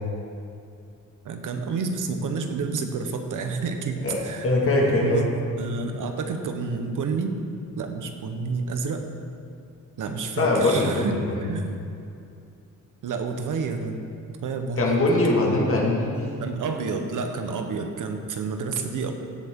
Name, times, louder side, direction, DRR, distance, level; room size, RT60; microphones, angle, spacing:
voice 1, 1.2-4.5 4.8-5.3 5.6-7.4 7.7-9.0 10.0-11.7 13.0-14.0 14.4-15.0 16.4-19.1, right 4 dB, 70° right, 5 dB, 1.0 m, -29 dB
voice 2, 4.0-5.3 10.4-11.5 14.8-16.3, left 2 dB, 40° left, -2 dB, 2.0 m, -22 dB
17.0 x 8.0 x 3.7 m, 2.5 s
wide cardioid pair, 160°, 33 cm